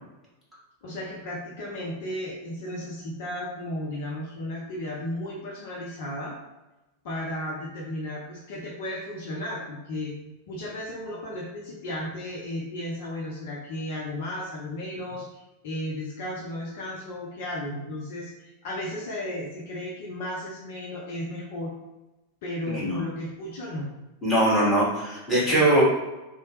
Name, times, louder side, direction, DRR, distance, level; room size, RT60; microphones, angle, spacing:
voice 1, 0.8-6.3 7.0-10.1 10.5-21.7 22.4-23.9, left 1 dB, 50° left, -3 dB, 0.5 m, -34 dB
voice 2, 22.7-23.0 24.2-25.8, right 1 dB, 5° left, -9 dB, 1.5 m, -21 dB
2.9 x 2.0 x 3.0 m, 1.0 s
figure-of-eight pair, 90°, 0 cm